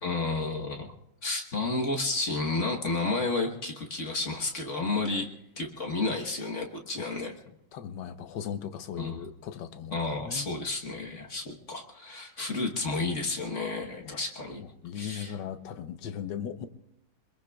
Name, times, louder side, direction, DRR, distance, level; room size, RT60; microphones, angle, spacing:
voice 1, 0.0-0.9 1.2-5.3 5.6-7.3 9.0-9.3 9.9-14.6 14.9-15.3, left 3 dB, 40° left, 1 dB, 1.3 m, -31 dB
voice 2, 7.5-10.5 14.0-14.2 14.6-16.7, left 8 dB, 65° left, 9 dB, 1.3 m, -38 dB
26.5 x 21.5 x 2.3 m, 0.79 s
omnidirectional pair, 2.4 m